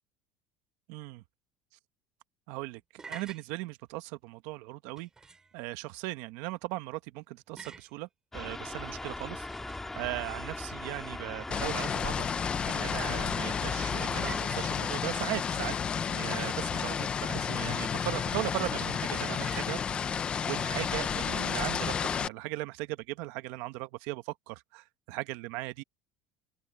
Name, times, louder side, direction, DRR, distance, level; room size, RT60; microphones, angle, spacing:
voice 1, 0.9-1.2 2.5-5.1 5.5-8.1 8.3-15.8 16.1-20.2 20.4-25.8, right 20 dB, 70° right, 1.3 m, -38 dB
sound 1, 3.0-3.5 5.0-5.6 7.6-8.0 9.0-10.0 11.6-12.4 14.3-14.8 16.5-17.1 19.1-19.7, right 4 dB, 15° right, 5.7 m, -48 dB
sound 2, 8.3-14.4, left 2 dB, 10° left, 2.0 m, -39 dB
sound 3, 11.5-22.3, left 7 dB, 25° left, 0.6 m, -31 dB
open air
cardioid pair, 165°, 4 cm